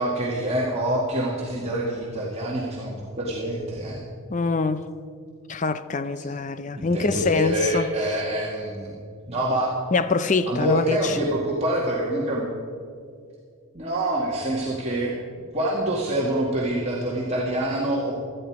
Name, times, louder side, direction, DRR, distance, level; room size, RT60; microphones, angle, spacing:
voice 1, 0.0-4.0 6.2-6.3 6.7-9.0 9.3-9.7 10.5-12.5 13.7-15.1 15.5-18.2, right 1 dB, 30° right, -5 dB, 1.9 m, -26 dB
voice 2, 4.3-4.9 5.5-7.9 9.9-11.2, left 4 dB, 35° left, 13 dB, 0.5 m, -24 dB
17.5 x 12.5 x 4.8 m, 2.2 s
head